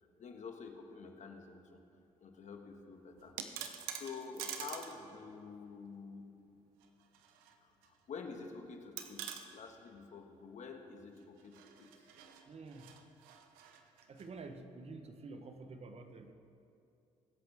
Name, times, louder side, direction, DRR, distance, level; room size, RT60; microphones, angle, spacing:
voice 1, 0.2-1.8 2.2-6.3 7.6-12.1, left 5 dB, 55° left, 4 dB, 1.6 m, -49 dB
sound 1, 3.2-5.0 5.3-5.4 6.8-7.5 7.8-7.9 9.0-9.5 11.4-14.3, right 9 dB, 90° right, 0.8 m, -46 dB
voice 2, 12.5-12.9 14.1-16.3, right 3 dB, 45° right, 7 dB, 1.1 m, -49 dB
23.5 x 8.0 x 3.5 m, 2.7 s
supercardioid pair, 60°, 14 cm